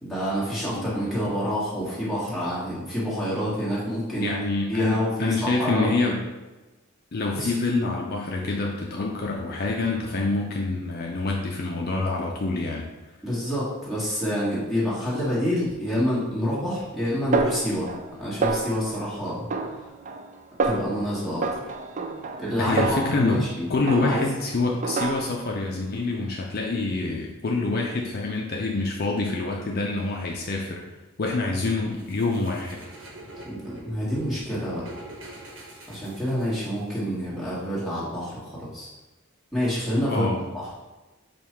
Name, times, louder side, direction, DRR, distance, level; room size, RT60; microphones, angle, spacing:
voice 1, 0.0-4.3 4.7-5.9 7.3-7.5 13.2-17.9 18.2-19.5 20.6-21.6 22.4-23.7 23.9-24.2 33.5-34.8 35.9-38.9 39.5-40.3 40.5-40.7, equal, ahead, -9 dB, 1.5 m, -27 dB
voice 2, 4.2-6.2 7.1-12.8 22.6-23.4 23.7-30.8 31.2-32.8 40.1-40.5, left 3 dB, 45° left, -1 dB, 0.5 m, -26 dB
Snare drum, 17.3-18.1 18.4-19.0 19.5-20.3 20.6-21.0 21.4-23.5 23.9-24.4 24.8-25.5, right 3 dB, 35° right, 0.3 m, -28 dB
sound 1, 32.0-36.9, right 1 dB, 70° right, 1.1 m, -43 dB
5.2 x 2.3 x 4.3 m, 1.1 s
head